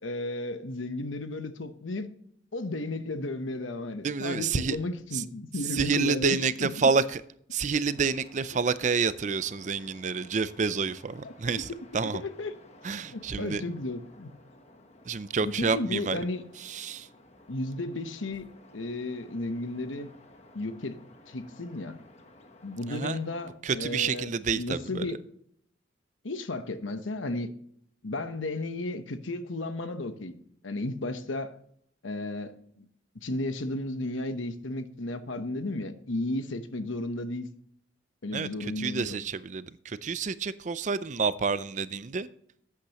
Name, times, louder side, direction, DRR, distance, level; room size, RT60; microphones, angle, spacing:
voice 1, 0.0-2.1 2.5-6.9 8.5-8.6 11.2-11.3 12.0-12.5 13.1-14.3 15.4-16.5 17.5-18.5 18.7-20.1 20.5-22.0 22.6-25.2 26.2-27.5 28.0-30.4 30.6-31.6 32.0-32.9 33.2-37.5 38.2-39.2, left 2 dB, 85° left, 1.0 m, -34 dB
voice 2, 4.0-4.8 5.1-5.2 5.7-7.2 7.5-11.7 11.9-12.2 12.8-13.6 15.1-16.2 16.6-17.1 22.9-23.2 23.6-25.1 38.3-42.3, right 5 dB, 40° right, 0.4 m, -28 dB
sound 1, 7.8-23.5, left 1 dB, 35° left, 1.1 m, -55 dB
12.0 x 8.4 x 3.0 m
head